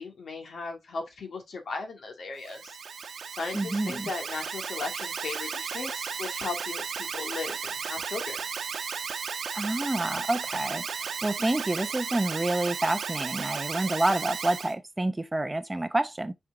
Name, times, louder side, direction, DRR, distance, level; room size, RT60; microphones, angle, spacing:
voice 1, 0.0-2.6 3.4-8.4, left 4 dB, 70° left, 2.0 m, -37 dB
Alarm, 2.4-14.7, right 6 dB, 85° right, 1.0 m, -34 dB
voice 2, 3.5-4.1 9.5-16.3, right 2 dB, 15° right, 0.6 m, -28 dB
6.3 x 4.6 x 3.7 m
wide cardioid pair, 125°, 0 cm